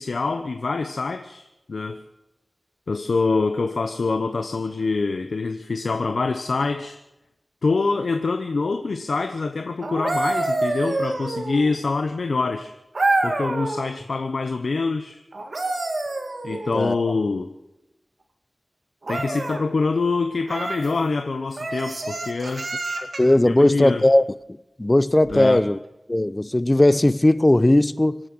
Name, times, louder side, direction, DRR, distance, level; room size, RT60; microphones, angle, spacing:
voice 1, 0.0-2.0 2.9-7.0 7.6-12.7 13.2-15.2 16.4-17.5 19.1-22.7 23.4-24.0 25.3-25.6, left 3 dB, 85° left, 0.9 m, -25 dB
sound 1, 9.8-11.8 12.9-13.9 15.3-16.9 19.0-19.6 20.5-20.9 21.6-23.4 25.2-25.4, right 2 dB, 65° right, 1.9 m, -27 dB
voice 2, 16.5-17.0 23.2-24.2 24.8-25.8 26.1-28.2, left 1 dB, 25° left, 0.6 m, -18 dB
26.0 x 9.0 x 6.2 m
wide cardioid pair, 60°, 0 cm